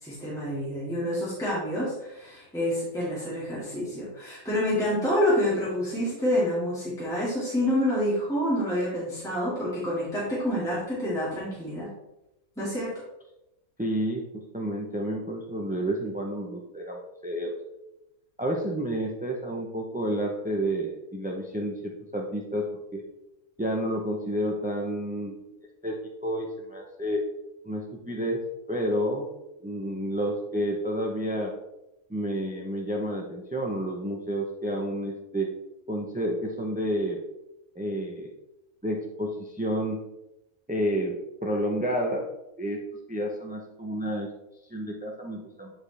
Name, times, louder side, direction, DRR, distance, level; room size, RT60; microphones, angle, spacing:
voice 1, 0.0-11.9 12.6-12.9, left 1 dB, ahead, -9 dB, 2.0 m, -28 dB
voice 2, 13.8-14.2 14.5-17.5 18.4-22.6 22.9-23.0 23.6-25.5 25.8-26.0 26.2-27.2 27.6-28.4 28.7-29.3 29.6-31.5 32.1-35.5 35.9-37.2 37.8-38.3 38.8-40.0 40.7-41.2 41.4-42.3 42.6-42.8 43.1-44.3 44.7-45.7, equal, 15° right, 1 dB, 0.3 m, -30 dB
9.7 x 4.4 x 3.3 m, 0.91 s
omnidirectional pair, 1.5 m